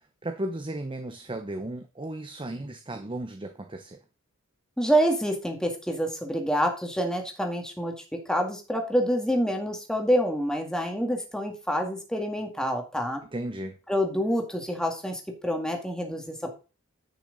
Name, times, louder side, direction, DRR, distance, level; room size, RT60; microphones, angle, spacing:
voice 1, 0.2-4.0 13.3-13.8, right 1 dB, 25° right, 0.8 m, -35 dB
voice 2, 4.8-7.9 8.3-13.2 13.9-16.5, equal, 5° left, 2.1 m, -27 dB
10.5 x 6.3 x 4.0 m
head